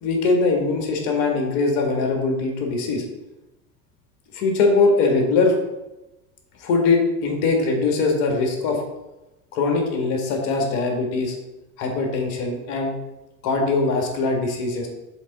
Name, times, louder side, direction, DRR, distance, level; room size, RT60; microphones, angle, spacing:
voice 1, 0.0-3.0 4.3-5.5 6.6-8.8 9.5-11.4 11.8-12.9 13.4-14.9, left 3 dB, 55° left, 2 dB, 1.8 m, -21 dB
7.1 x 4.0 x 4.1 m, 1.0 s
hypercardioid pair, 85°, 46 cm